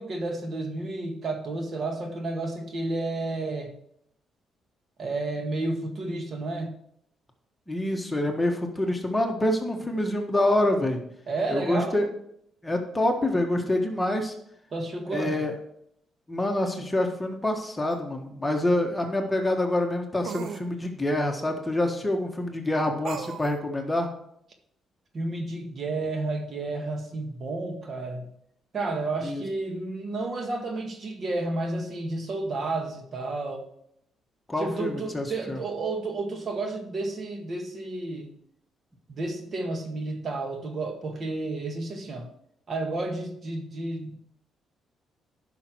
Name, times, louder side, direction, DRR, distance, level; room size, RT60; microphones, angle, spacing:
voice 1, 0.0-3.7 5.0-6.8 11.3-12.0 14.7-15.5 25.1-28.3 28.7-33.7 34.6-38.3 39.1-42.3 42.7-44.2, right 2 dB, 45° right, 4 dB, 1.6 m, -31 dB
voice 2, 7.7-11.0 11.5-12.1 12.6-14.3 15.1-15.5 16.3-24.1 29.2-29.4 34.5-35.6, left 1 dB, 10° left, 3 dB, 1.5 m, -26 dB
sound 1, 17.9-18.0 20.2-20.7 23.0-23.6, right 8 dB, 70° right, 0.4 m, -37 dB
10.5 x 5.8 x 4.6 m, 0.72 s
cardioid pair, 90°, 0 cm